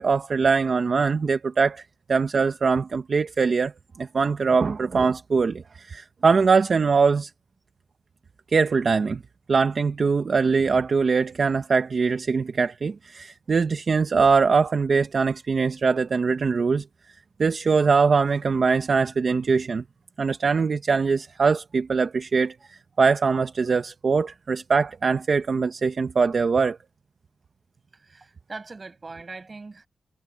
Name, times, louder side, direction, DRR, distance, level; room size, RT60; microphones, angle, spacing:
voice 1, 0.0-1.8 2.1-3.7 4.0-7.3 8.5-9.2 9.5-16.8 17.4-19.8 20.2-26.8, right 5 dB, 55° right, 0.9 m, -22 dB
voice 2, 27.9-29.9, right 3 dB, 40° right, 6.5 m, -41 dB
wide cardioid pair, 100°, 0 cm